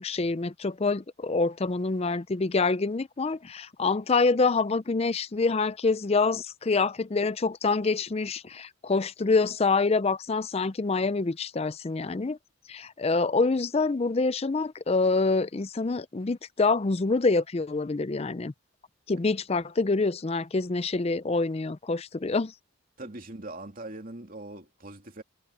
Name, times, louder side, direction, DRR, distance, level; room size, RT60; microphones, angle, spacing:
voice 1, 0.0-12.4 12.7-18.5 19.1-22.5, left 3 dB, 30° left, 0.4 m, -26 dB
voice 2, 23.0-25.2, right 2 dB, 40° right, 2.7 m, -41 dB
head